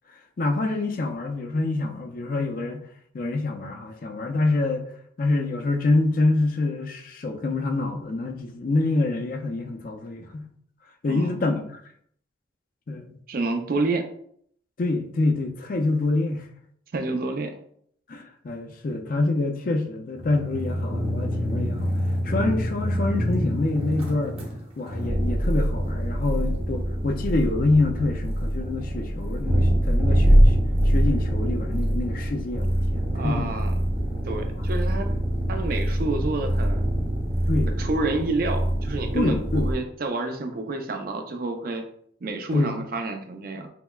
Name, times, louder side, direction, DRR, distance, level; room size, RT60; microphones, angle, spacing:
voice 1, 0.4-2.8 3.1-4.9 5.2-10.5 11.0-11.8 12.9-13.1 14.8-16.5 18.1-21.9 22.2-24.4 24.8-30.6 30.9-33.6 34.6-34.7 37.5-37.7 39.1-39.7 42.5-42.8, left 2 dB, 45° left, 0.4 m, -26 dB
voice 2, 13.3-14.1 16.9-17.6 33.1-33.9 34.3-35.1 35.5-36.9 37.8-41.9 42.2-43.7, right 3 dB, 50° right, 0.4 m, -29 dB
sound 1, 20.1-39.7, equal, 30° right, 0.9 m, -24 dB
5.6 x 2.0 x 2.2 m
head